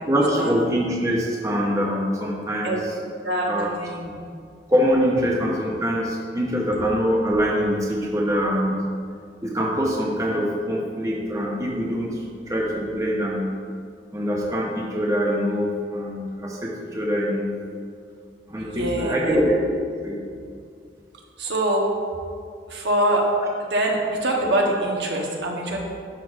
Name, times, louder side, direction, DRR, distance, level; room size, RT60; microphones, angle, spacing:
voice 1, 0.1-2.8 3.5-3.7 4.7-8.8 9.4-13.5 14.1-17.5 18.5-19.6 20.0-20.2, equal, 15° right, -3 dB, 0.7 m, -24 dB
voice 2, 3.2-4.2 11.1-11.2 18.6-19.4 21.4-21.9 22.7-23.3 23.6-25.8, right 1 dB, 70° right, -1 dB, 1.1 m, -24 dB
11.0 x 5.8 x 2.5 m, 2.2 s
head